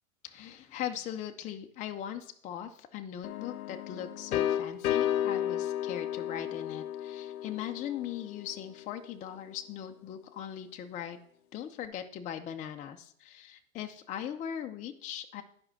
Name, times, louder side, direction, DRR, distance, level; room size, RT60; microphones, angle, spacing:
voice 1, 0.2-11.2 11.5-15.4, left 10 dB, 20° left, 5 dB, 0.4 m, -40 dB
sound 1, 3.2-8.9, left 11 dB, 80° left, 0.7 m, -33 dB
8.7 x 5.2 x 5.8 m, 0.64 s
hypercardioid pair, 110°, 42 cm